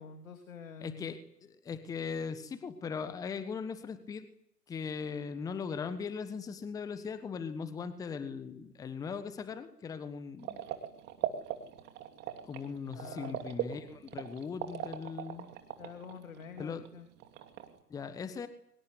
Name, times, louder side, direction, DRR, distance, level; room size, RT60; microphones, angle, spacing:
voice 1, 0.0-1.1 12.9-13.5 15.8-17.1, left 6 dB, 55° left, 6 dB, 3.4 m, -47 dB
voice 2, 0.8-4.3 4.7-10.6 12.5-15.5 16.6-16.8 17.9-18.5, left 5 dB, 5° left, 12 dB, 1.3 m, -39 dB
sound 1, 10.4-16.9 17.1-17.8, right 11 dB, 20° right, 2.8 m, -40 dB
24.5 x 24.0 x 8.3 m, 0.74 s
figure-of-eight pair, 125°, 47 cm